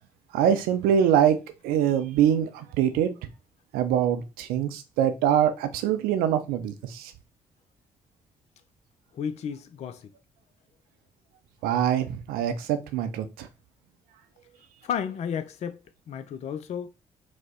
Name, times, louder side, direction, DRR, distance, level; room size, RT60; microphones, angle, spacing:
voice 1, 0.3-1.4 1.6-3.1 3.7-7.1 11.6-13.5, right 9 dB, 60° right, 0.6 m, -24 dB
voice 2, 9.1-10.1 14.8-15.8 16.1-16.9, left 8 dB, 40° left, 0.4 m, -32 dB
4.9 x 2.1 x 4.0 m
figure-of-eight pair, 40°, 17 cm